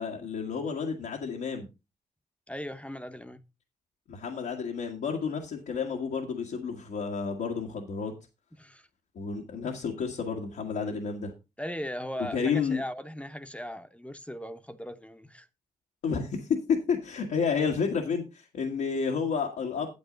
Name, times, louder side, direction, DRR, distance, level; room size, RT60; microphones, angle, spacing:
voice 1, 0.0-1.7 4.1-8.1 9.2-11.3 12.3-12.8 16.0-19.9, left 6 dB, 85° left, 1.7 m, -30 dB
voice 2, 2.5-3.4 8.6-8.8 11.6-15.5, equal, 10° left, 1.0 m, -38 dB
9.3 x 8.3 x 3.9 m
supercardioid pair, 45°, 15 cm